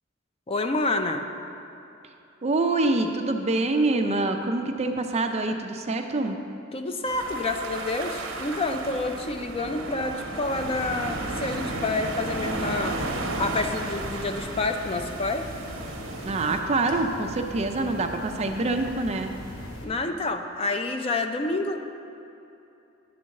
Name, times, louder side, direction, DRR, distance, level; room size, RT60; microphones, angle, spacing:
voice 1, 0.5-1.2 6.7-13.0 13.4-15.4 19.8-21.8, left 2 dB, 30° left, 6 dB, 0.4 m, -28 dB
voice 2, 2.4-6.4 16.2-19.3, right 2 dB, 30° right, 5 dB, 0.5 m, -25 dB
sound 1, 7.0-16.6, right 2 dB, 75° right, 0.8 m, -34 dB
sound 2, 10.4-19.8, left 1 dB, 80° left, 1.1 m, -40 dB
9.4 x 3.9 x 6.4 m, 2.8 s
head